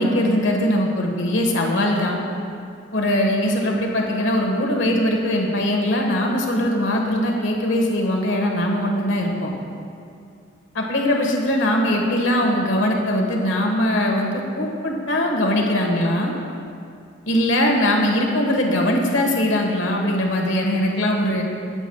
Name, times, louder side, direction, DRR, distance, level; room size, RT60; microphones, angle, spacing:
voice 1, 0.0-2.2 2.9-9.5 10.7-16.3 17.3-21.4, left 1 dB, 70° left, 1 dB, 1.4 m, -21 dB
19.0 x 8.0 x 2.3 m, 2.5 s
head